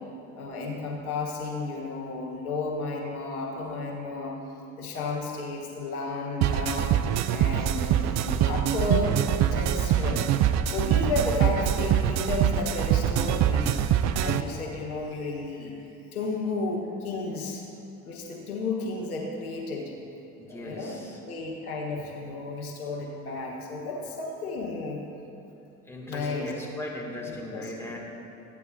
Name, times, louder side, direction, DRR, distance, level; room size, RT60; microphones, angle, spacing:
voice 1, 0.3-4.4 4.8-7.0 7.3-9.2 9.5-10.3 10.7-13.9 14.2-15.7 16.1-17.6 18.0-19.9 20.5-25.0 26.1-26.5 27.2-28.0, left 3 dB, 85° left, 0 dB, 1.2 m, -32 dB
sound 1, 6.4-14.4, right 10 dB, 40° right, 0.5 m, -24 dB
voice 2, 20.4-21.2 25.8-28.0, left 1 dB, 5° left, -3 dB, 2.2 m, -38 dB
13.5 x 9.5 x 2.7 m, 2.9 s
hypercardioid pair, 65°, 43 cm